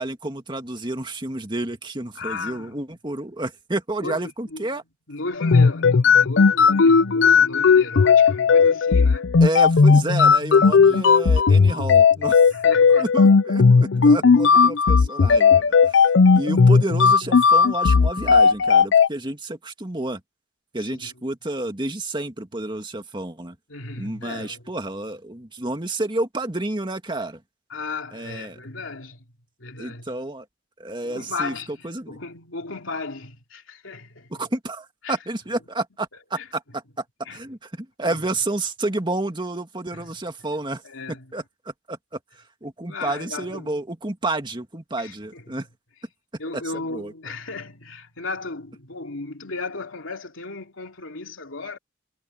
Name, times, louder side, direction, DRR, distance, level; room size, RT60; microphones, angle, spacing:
voice 1, 0.0-4.8 9.4-12.4 12.9-20.2 20.7-23.6 24.0-27.4 28.1-28.6 29.8-30.5 30.8-31.5 31.8-32.2 34.3-37.0 37.3-40.8 41.3-41.4 41.9-42.0 42.6-45.7 46.5-47.1, right 2 dB, 25° right, 2.1 m, -30 dB
voice 2, 2.1-2.8 4.0-4.8 5.1-9.3 10.6-11.1 12.5-13.1 13.7-14.0 14.3-14.4 20.8-21.1 23.7-24.6 27.7-29.2 29.6-30.1 31.0-34.3 35.0-35.2 36.4-36.5 37.2-37.4 38.0-38.2 39.9-40.1 40.8-41.3 42.9-43.7 45.0-45.6 46.4-51.8, left 3 dB, 85° left, 2.9 m, -35 dB
Barbie Vogue, 5.4-19.1, left 5 dB, 60° left, 0.5 m, -15 dB
head